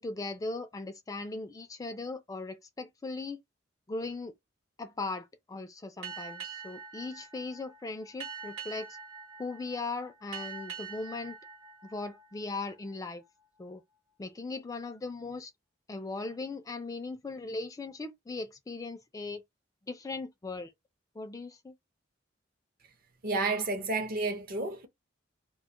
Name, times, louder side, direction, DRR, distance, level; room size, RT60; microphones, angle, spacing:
voice 1, 0.0-3.4 3.9-4.3 4.8-8.9 9.4-11.4 11.9-13.2 13.6-13.8 14.2-15.5 15.9-19.4 19.9-20.7 21.2-21.7, left 3 dB, 20° left, 0.3 m, -38 dB
Boat Water vehicle, 6.0-13.1, right 6 dB, 80° right, 1.0 m, -45 dB
voice 2, 23.2-24.9, right 3 dB, 50° right, 0.6 m, -31 dB
2.2 x 2.0 x 3.7 m
head